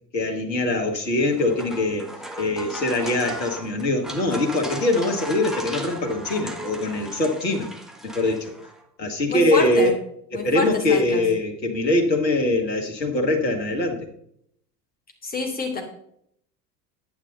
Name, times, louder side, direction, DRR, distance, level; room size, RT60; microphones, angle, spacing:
voice 1, 0.1-2.1 2.4-7.7 8.0-8.5 9.0-9.9 10.3-14.1, left 2 dB, 85° left, 3 dB, 1.8 m, -23 dB
sound 1, 1.2-8.8, right 1 dB, ahead, 1.6 m, -37 dB
voice 2, 9.3-9.9 10.3-11.2 15.2-15.8, left 2 dB, 15° left, 2 dB, 3.3 m, -27 dB
10.5 x 9.3 x 4.0 m, 0.69 s
figure-of-eight pair, 70°, 50 cm